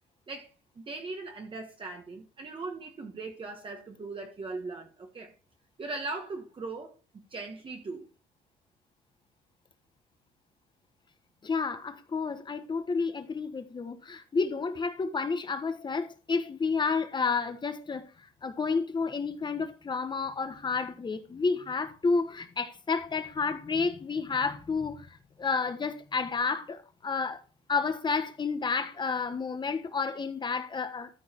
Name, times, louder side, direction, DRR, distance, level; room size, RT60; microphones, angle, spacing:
voice 1, 0.3-5.3 5.8-8.0, right 3 dB, 30° right, 1.4 m, -39 dB
voice 2, 11.4-18.0 18.4-25.1 25.4-27.4 27.7-31.1, left 4 dB, 25° left, 1.1 m, -30 dB
13.5 x 4.7 x 4.4 m
cardioid pair, 110°, 17 cm